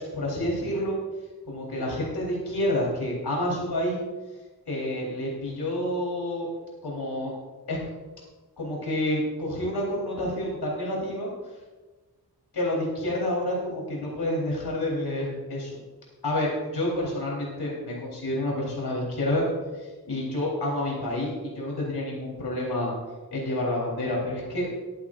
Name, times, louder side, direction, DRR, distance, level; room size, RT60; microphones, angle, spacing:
voice 1, 0.1-1.0 1.5-4.0 4.7-6.5 6.8-7.3 7.7-7.8 8.6-11.6 12.5-15.8 16.2-19.4 19.7-22.9 23.3-24.7, left 1 dB, 85° left, -4 dB, 4.0 m, -29 dB
21.5 x 8.9 x 2.6 m, 1.3 s
wide cardioid pair, 90°, 38 cm